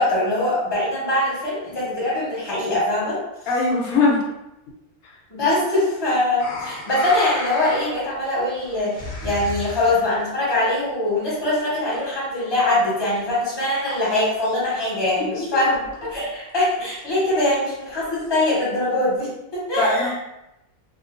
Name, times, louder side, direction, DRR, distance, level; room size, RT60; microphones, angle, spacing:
voice 1, 0.0-3.2 5.3-20.1, left 1 dB, 20° left, -8 dB, 0.9 m, -22 dB
voice 2, 3.5-4.2 5.0-5.1 19.8-20.2, left 3 dB, 85° left, -2 dB, 1.1 m, -20 dB
sound 1, 6.4-8.1 8.5-10.3 11.2-12.4 12.7-13.2 13.6-14.5 14.7-14.8 15.1-15.2 15.4-15.5 15.7-16.2 16.5-16.6 17.1-18.3 18.9-19.0, left 3 dB, 55° left, 0.5 m, -34 dB
2.4 x 2.2 x 2.5 m, 0.90 s
omnidirectional pair, 1.5 m